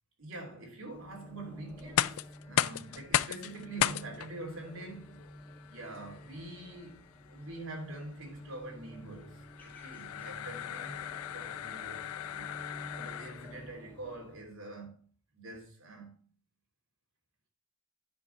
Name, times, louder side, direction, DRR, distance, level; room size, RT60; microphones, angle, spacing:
voice 1, 0.2-2.2 2.4-5.2 5.7-7.0 7.3-12.0 12.3-12.5 13.0-15.0 15.3-16.1, right 2 dB, 65° right, 3.0 m, -45 dB
sound 1, 0.9-14.4, equal, 10° left, 1.9 m, -51 dB
sound 2, 1.8-13.7, left 11 dB, 75° left, 0.4 m, -36 dB
9.7 x 5.2 x 4.4 m
head